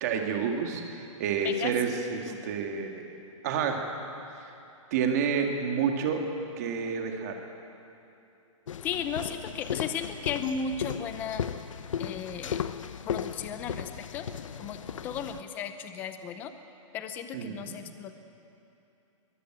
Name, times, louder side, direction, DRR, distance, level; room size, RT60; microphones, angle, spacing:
voice 1, 0.0-2.9 3.4-3.8 4.9-6.2 6.6-7.4 17.3-17.7, right 6 dB, 30° right, 3 dB, 1.9 m, -29 dB
sound 1, 8.7-15.4, left 8 dB, 75° left, 0.9 m, -36 dB
voice 2, 8.8-11.5 12.0-12.6 13.1-14.3 14.6-14.8 15.0-16.5 16.9-18.2, left 6 dB, 10° left, 9 dB, 0.6 m, -35 dB
22.5 x 14.0 x 8.9 m, 2.9 s
hypercardioid pair, 175°, 17 cm